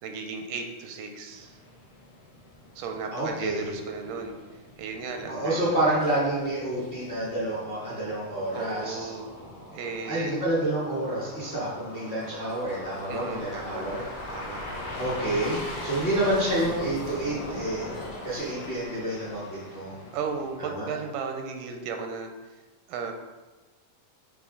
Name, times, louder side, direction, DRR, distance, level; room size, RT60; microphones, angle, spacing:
voice 1, 0.0-1.6 2.8-4.4 4.8-6.0 8.5-9.4 9.7-10.4 13.1-13.9 14.3-14.6 20.1-22.6 22.9-23.1, right 5 dB, 85° right, 4 dB, 2.2 m, -35 dB
sound 1, 1.3-20.6, left 1 dB, 80° left, 0.9 m, -40 dB
voice 2, 3.1-3.7 5.3-9.0 10.1-14.0 15.0-17.9 18.2-19.9 20.6-20.9, right 1 dB, 35° left, -8 dB, 0.9 m, -28 dB
8.3 x 3.3 x 3.7 m, 1.2 s
omnidirectional pair, 3.7 m